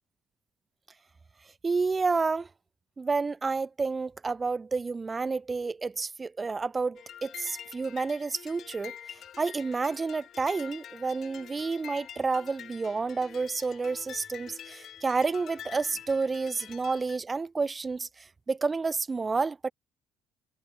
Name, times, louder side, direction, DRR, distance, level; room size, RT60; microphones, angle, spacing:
voice 1, 1.6-2.5 3.0-19.7, right 4 dB, 25° right, 0.4 m, -30 dB
sound 1, 7.0-17.2, left 10 dB, 55° left, 0.3 m, -46 dB
supercardioid pair, 70°, 0 cm